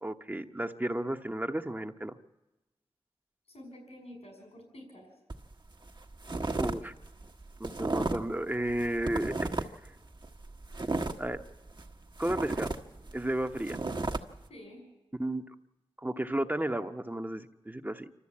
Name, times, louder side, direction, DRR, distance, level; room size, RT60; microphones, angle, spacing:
voice 1, 0.0-2.1 6.6-6.9 7.6-9.5 11.2-11.4 12.2-12.7 13.1-13.8 15.2-15.4 16.0-18.2, right 1 dB, 20° right, 7 dB, 1.1 m, -33 dB
voice 2, 3.5-5.1 14.5-14.8, left 1 dB, 90° left, 2 dB, 6.0 m, -49 dB
sound 1, 5.3-5.5 5.9-6.8 7.0-8.3 8.7-9.9 10.2-11.9 12.2-14.2, right 2 dB, 45° right, 1.4 m, -33 dB
27.0 x 13.0 x 8.7 m, 1.0 s
cardioid pair, 45°, 10 cm